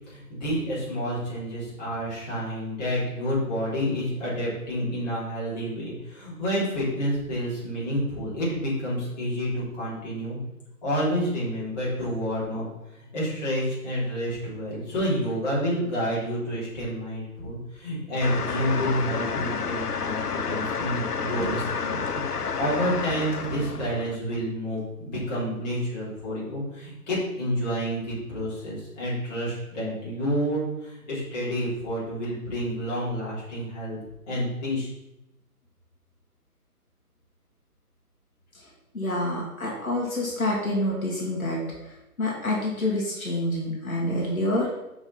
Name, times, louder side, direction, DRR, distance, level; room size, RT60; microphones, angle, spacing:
voice 1, 0.1-10.4 10.8-12.6 12.9-34.0 34.3-34.9, equal, 25° left, -8 dB, 3.3 m, -29 dB
sound 1, 18.2-24.2, left 6 dB, 75° left, 0.8 m, -30 dB
sound 2, 21.4-21.9 22.7-24.0 24.8-24.9, right 2 dB, 50° right, 2.5 m, -40 dB
voice 2, 38.9-41.9 42.2-44.8, left 1 dB, 60° left, -4 dB, 2.7 m, -27 dB
6.1 x 5.9 x 5.8 m, 0.95 s
figure-of-eight pair, 155°, 46 cm